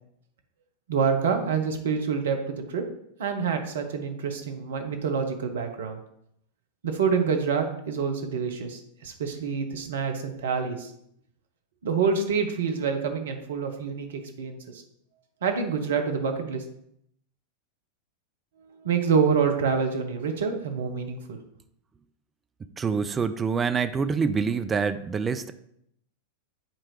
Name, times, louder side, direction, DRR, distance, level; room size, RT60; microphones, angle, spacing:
voice 1, 0.9-2.8 3.2-6.0 6.8-10.9 11.8-14.8 15.4-16.6 18.8-21.4, right 6 dB, 60° right, 5 dB, 0.9 m, -27 dB
voice 2, 22.8-25.5, right 5 dB, 20° right, 10 dB, 0.4 m, -26 dB
9.0 x 4.3 x 3.2 m, 0.72 s
figure-of-eight pair, 90°, 0 cm